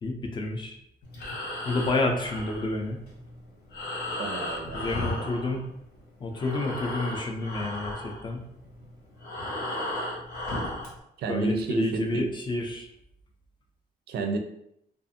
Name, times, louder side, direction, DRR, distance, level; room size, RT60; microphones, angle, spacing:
voice 1, 0.0-0.8 1.6-3.0 4.7-5.6 6.2-8.4 11.3-12.9, left 2 dB, 30° left, 2 dB, 0.3 m, -29 dB
Breathing, 1.0-6.0 6.3-11.0, left 1 dB, 80° left, 1.0 m, -35 dB
voice 2, 4.2-4.9 5.2-5.3 11.2-12.2 14.1-14.4, right 3 dB, 80° right, 5 dB, 0.4 m, -30 dB
2.5 x 2.4 x 2.6 m, 0.76 s
wide cardioid pair, 165°, 17 cm